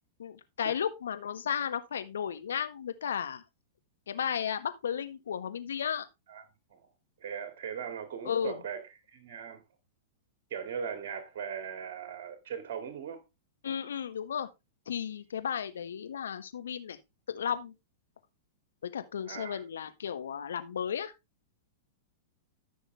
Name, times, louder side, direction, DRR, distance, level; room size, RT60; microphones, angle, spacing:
voice 1, 0.2-3.4 4.1-6.1 8.2-8.6 13.6-14.5 14.9-17.0 17.3-17.7 18.8-21.1, left 8 dB, 75° left, 1.5 m, -34 dB
voice 2, 7.2-8.8 9.1-9.6 10.5-13.2 19.3-19.6, right 7 dB, 55° right, 2.1 m, -39 dB
14.5 x 6.3 x 3.4 m
hypercardioid pair, 105°, 0 cm